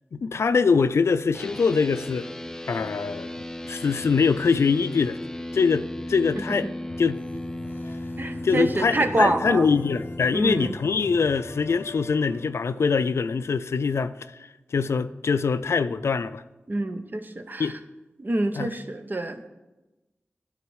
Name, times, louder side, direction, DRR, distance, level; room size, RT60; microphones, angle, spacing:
voice 1, 0.1-2.3 2.7-3.4 3.7-5.2 5.5-6.7 7.0-7.2 8.4-14.1 14.7-16.4 17.6-17.7 18.6-18.7, left 5 dB, 80° left, 0.3 m, -23 dB
sound 1, 1.3-10.7, left 1 dB, 15° left, 0.4 m, -36 dB
sound 2, 6.9-12.5, left 3 dB, 55° left, 0.7 m, -43 dB
voice 2, 8.2-9.7 10.3-10.7 16.7-17.7 18.2-19.5, right 2 dB, 45° right, 0.8 m, -26 dB
13.0 x 4.4 x 4.7 m
wide cardioid pair, 50°, 5 cm